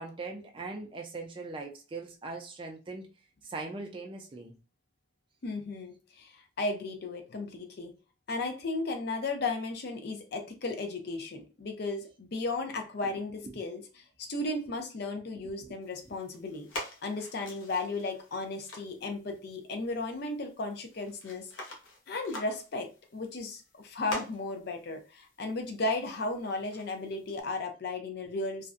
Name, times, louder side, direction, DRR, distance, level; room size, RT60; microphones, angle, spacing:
voice 1, 0.0-3.1 3.4-4.6 13.4-13.6 15.3-15.8, right 3 dB, 25° right, 0.3 m, -41 dB
voice 2, 5.4-7.9 8.3-16.7 17.0-21.5 22.1-28.7, left 2 dB, 55° left, 0.5 m, -35 dB
sound 1, 15.8-27.4, left 1 dB, 80° left, 0.7 m, -47 dB
2.5 x 2.1 x 2.4 m
head